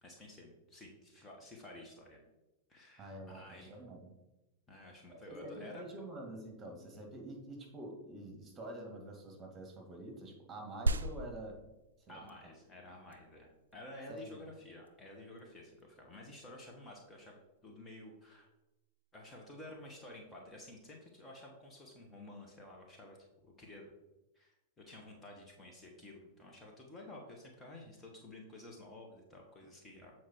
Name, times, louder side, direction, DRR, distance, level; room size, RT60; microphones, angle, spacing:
voice 1, 0.0-2.3 2.7-3.8 4.7-5.8 12.1-18.5 19.1-23.2 23.4-23.9 24.3-30.1, left 1 dB, 15° left, -1 dB, 1.5 m, -52 dB
voice 2, 3.0-4.1 5.1-11.6 12.1-12.3 14.1-14.4, right 1 dB, 20° right, 2 dB, 2.2 m, -47 dB
sound 1, 10.9-20.8, right 2 dB, 80° right, 0.4 m, -43 dB
8.0 x 4.6 x 4.6 m, 0.99 s
figure-of-eight pair, 95°, 0 cm